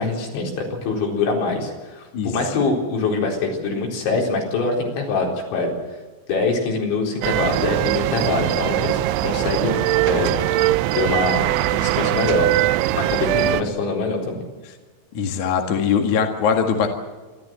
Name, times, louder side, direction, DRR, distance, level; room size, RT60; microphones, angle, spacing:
voice 1, 0.0-5.7 6.3-9.8 10.1-12.5 12.9-14.4, left 3 dB, 70° left, 0 dB, 6.5 m, -24 dB
sound 1, 7.2-13.6, right 15 dB, 80° right, 3.1 m, -21 dB
voice 2, 15.1-16.9, left 6 dB, 50° left, 3 dB, 2.7 m, -21 dB
27.5 x 13.5 x 7.8 m, 1.3 s
omnidirectional pair, 5.6 m